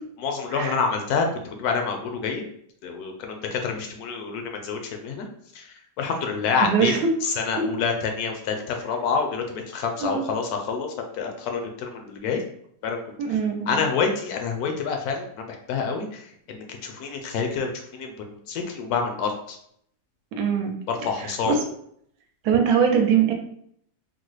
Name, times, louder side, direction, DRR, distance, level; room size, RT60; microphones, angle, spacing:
voice 1, 0.2-2.4 2.8-5.3 5.5-6.9 7.2-10.9 11.1-12.4 12.8-13.0 13.7-19.6 20.9-21.6, left 5 dB, 75° left, 3 dB, 1.0 m, -27 dB
voice 2, 6.6-7.1 10.0-10.3 13.2-13.8 20.4-20.7 21.2-21.6 22.4-23.3, right 7 dB, 75° right, 3 dB, 1.1 m, -22 dB
3.9 x 2.0 x 3.1 m, 0.68 s
omnidirectional pair, 1.7 m